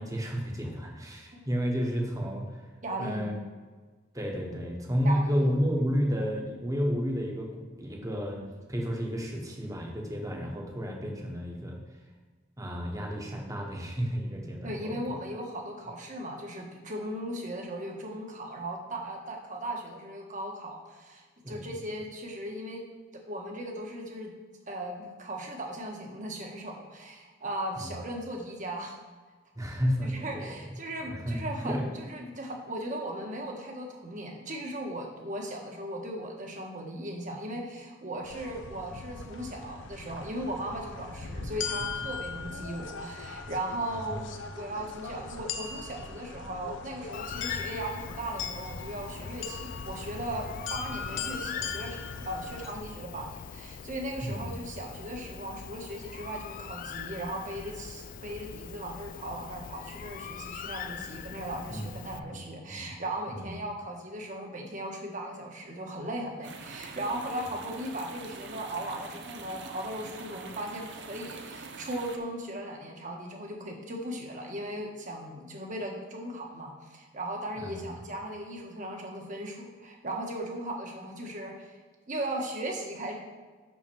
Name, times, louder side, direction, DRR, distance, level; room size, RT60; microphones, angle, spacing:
voice 1, 0.0-2.7 3.0-3.3 4.1-11.8 12.6-15.0 21.4-21.7 27.8-27.9 29.6-30.6 31.0-31.8 43.9-44.2 54.2-54.5 61.7-62.9 63.3-63.5 77.5-77.9, equal, 20° right, 1 dB, 1.2 m, -32 dB
voice 2, 2.8-3.3 5.0-5.5 14.6-22.8 23.3-24.3 24.7-28.9 30.0-44.2 44.5-52.0 52.2-81.7 82.1-83.1, right 1 dB, 40° right, 1 dB, 1.4 m, -37 dB
sound 1, 38.2-52.7, left 5 dB, 80° left, 0.8 m, -39 dB
Bird, 47.1-62.2, left 7 dB, 45° left, 0.3 m, -42 dB
sound 2, 66.4-72.2, right 4 dB, 65° right, 0.8 m, -44 dB
6.0 x 5.8 x 7.0 m, 1.4 s
head